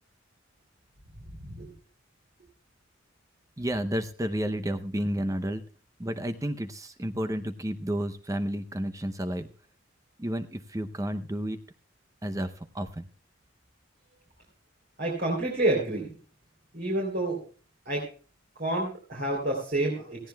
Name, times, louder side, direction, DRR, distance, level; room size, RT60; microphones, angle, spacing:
voice 1, 1.4-1.7 15.0-16.1 16.7-17.4 17.8-18.0 18.6-20.3, right 2 dB, 50° right, -2 dB, 3.3 m, -28 dB
voice 2, 3.6-5.6 6.0-9.5 10.2-11.6 12.2-13.1, equal, 15° right, 9 dB, 0.6 m, -31 dB
18.0 x 15.0 x 2.3 m, 0.39 s
head